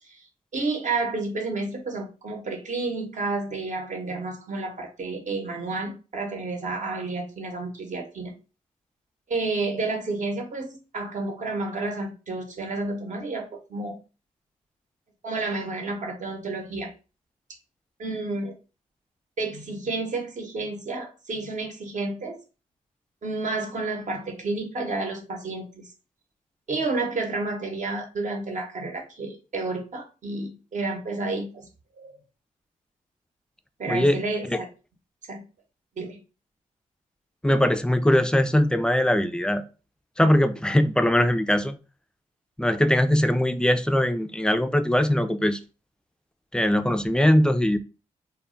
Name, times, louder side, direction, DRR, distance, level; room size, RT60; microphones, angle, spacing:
voice 1, 0.5-8.3 9.3-14.0 15.2-16.9 18.0-18.5 19.4-22.4 23.2-25.9 26.7-31.7 32.0-32.1 33.8-34.5 35.3-35.4 36.0-36.2, right 3 dB, 60° right, 3 dB, 0.9 m, -30 dB
voice 2, 33.9-34.2 34.5-34.6 37.4-39.6 40.2-41.7 42.6-45.6 46.5-47.8, left 1 dB, 5° left, 9 dB, 0.3 m, -21 dB
2.2 x 2.1 x 3.6 m, 0.33 s
cardioid pair, 60°, 15 cm